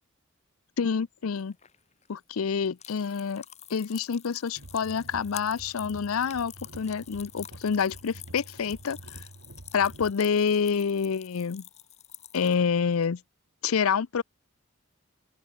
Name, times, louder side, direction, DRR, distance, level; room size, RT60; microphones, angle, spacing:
voice 1, 0.8-1.5 2.1-3.4 3.7-9.2 9.7-11.6 12.3-13.2 13.6-14.2, left 6 dB, 90° left, 0.5 m, -27 dB
sound 1, 1.4-13.1, left 11 dB, 30° left, 1.9 m, -48 dB
sound 2, 4.6-10.1, right 1 dB, 75° right, 1.6 m, -47 dB
open air
head